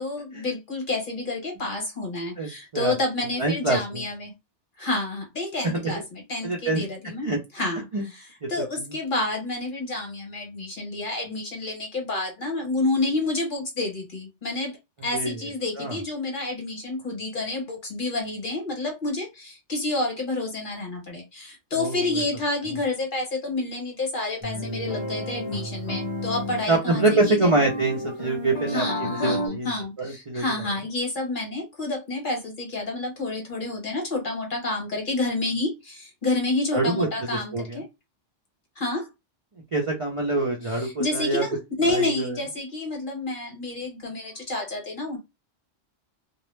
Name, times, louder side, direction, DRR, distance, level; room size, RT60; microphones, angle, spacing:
voice 1, 0.0-4.3 4.8-14.8 15.0-27.6 28.7-37.8 38.8-39.1 40.6-45.2, left 2 dB, 50° left, 1.0 m, -29 dB
voice 2, 2.4-2.9 3.4-4.0 5.6-5.9 6.4-6.8 7.2-7.4 7.9-8.1 8.4-8.9 15.1-15.4 15.8-16.0 21.7-22.2 26.7-29.7 30.0-30.7 36.7-37.8 39.7-41.4 41.9-42.4, right 2 dB, 45° right, 0.4 m, -25 dB
sound 1, 24.4-29.5, equal, 25° left, 0.8 m, -31 dB
2.3 x 2.0 x 3.1 m
omnidirectional pair, 1.2 m